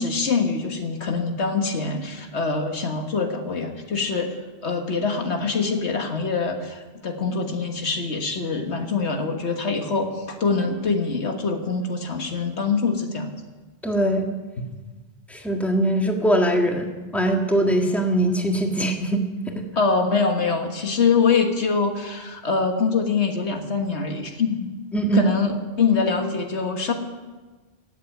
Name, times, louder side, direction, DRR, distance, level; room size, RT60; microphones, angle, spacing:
voice 1, 0.0-4.3 4.6-13.3 14.6-14.7 19.8-24.7 25.1-26.9, left 4 dB, 75° left, 4 dB, 1.8 m, -24 dB
voice 2, 13.8-14.3 15.3-16.9 17.1-19.2 19.5-19.6 24.9-25.2, right 1 dB, ahead, 2 dB, 1.6 m, -21 dB
16.5 x 8.0 x 9.1 m, 1.3 s
omnidirectional pair, 1.1 m